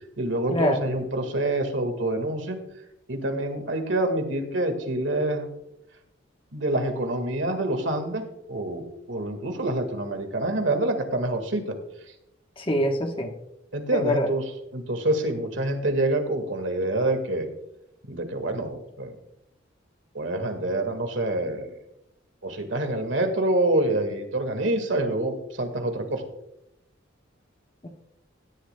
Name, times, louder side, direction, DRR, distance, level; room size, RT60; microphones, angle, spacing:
voice 1, 0.2-2.6 3.1-5.5 6.5-11.8 13.7-14.4 14.7-17.5 18.1-19.2 20.1-21.8 22.4-26.2, right 1 dB, 65° right, 6 dB, 1.8 m, -26 dB
voice 2, 12.6-13.3 13.9-14.3 27.8-27.9, left 1 dB, 25° left, 4 dB, 1.1 m, -24 dB
16.5 x 12.0 x 2.2 m, 0.82 s
head